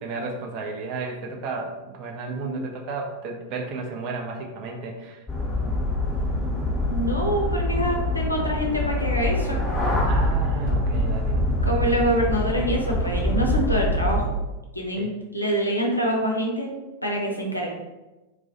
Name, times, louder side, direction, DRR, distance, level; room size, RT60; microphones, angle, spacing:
voice 1, 0.0-5.2 10.1-11.4 15.0-15.1, right 3 dB, 40° right, 2 dB, 0.4 m, -33 dB
sound 1, 5.3-14.2, left 1 dB, 5° left, 0.8 m, -24 dB
voice 2, 6.9-9.6 11.6-14.4 14.7-16.7 17.0-17.7, equal, 85° left, 0 dB, 0.4 m, -25 dB
2.2 x 2.1 x 2.7 m, 1.1 s
figure-of-eight pair, 90°, 0 cm